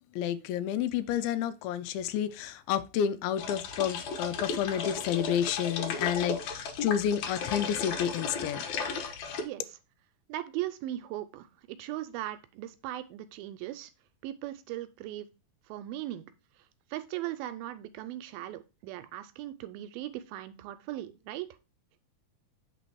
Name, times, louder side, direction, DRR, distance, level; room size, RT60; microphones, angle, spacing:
voice 1, 0.1-8.6, left 9 dB, 85° left, 2.4 m, -30 dB
sound 1, 3.4-9.4, left 5 dB, 65° left, 1.9 m, -35 dB
voice 2, 10.3-13.9 14.2-15.3 15.7-16.3 16.9-21.5, right 14 dB, 85° right, 2.4 m, -38 dB
8.1 x 4.2 x 4.6 m
omnidirectional pair, 4.4 m